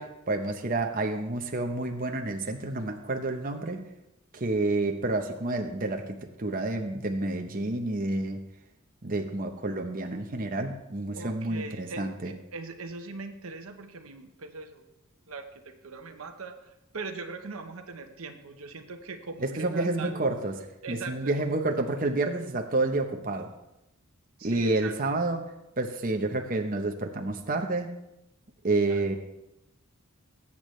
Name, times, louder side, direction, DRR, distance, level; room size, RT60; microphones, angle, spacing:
voice 1, 0.0-3.9 4.3-8.5 9.0-12.3 19.4-20.6 20.9-23.5 24.4-25.4 25.8-27.9 28.6-29.1, right 2 dB, 40° right, 4 dB, 0.9 m, -29 dB
voice 2, 11.1-14.8 15.3-20.2 20.8-21.5 24.4-24.9 28.9-29.1, right 3 dB, 75° right, 6 dB, 1.0 m, -40 dB
20.0 x 8.5 x 3.2 m, 0.90 s
head